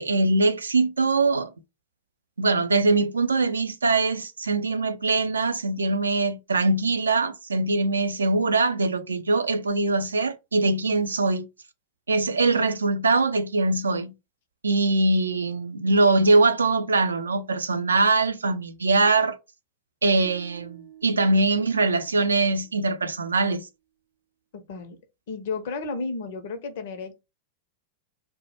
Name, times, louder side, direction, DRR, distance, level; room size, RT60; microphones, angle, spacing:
voice 1, 0.0-1.5 2.4-11.5 12.1-14.1 14.6-19.4 20.0-23.6, right 3 dB, 75° right, 0.3 m, -22 dB
sound 1, 20.2-23.4, right 11 dB, 45° right, 0.8 m, -50 dB
voice 2, 24.5-25.0 25.3-27.1, left 4 dB, 55° left, 0.5 m, -32 dB
2.1 x 2.0 x 2.8 m
figure-of-eight pair, 90°, 0 cm